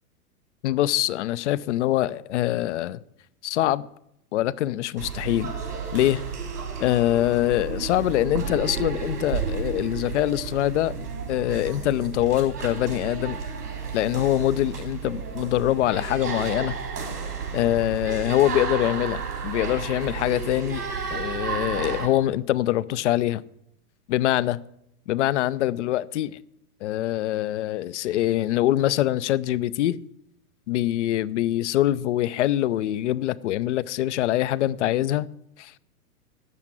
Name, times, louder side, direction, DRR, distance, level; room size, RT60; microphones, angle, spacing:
voice 1, 0.6-3.0 3.4-3.9 4.3-5.5 5.9-6.2 6.8-10.9 11.3-13.4 13.9-16.7 17.5-20.8 21.1-23.4 24.1-24.6 25.1-26.4 26.8-30.0 30.7-35.3 35.6-35.7, left 14 dB, 50° left, 0.6 m, -24 dB
sound 1, 5.0-22.1, right 5 dB, 80° right, 3.9 m, -32 dB
12.5 x 8.1 x 7.6 m
hypercardioid pair, 110°, 46 cm